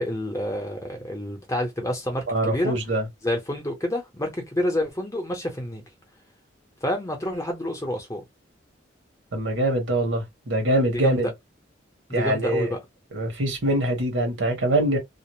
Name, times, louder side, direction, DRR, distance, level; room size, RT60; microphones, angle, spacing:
voice 1, 0.0-2.7 3.2-5.8 6.8-8.2 11.0-11.2 12.1-12.8, left 1 dB, 15° left, 0.7 m, -28 dB
voice 2, 2.3-3.1 9.3-11.3 12.1-12.7 13.1-15.0, right 1 dB, 80° right, 1.1 m, -24 dB
2.5 x 2.0 x 2.9 m
head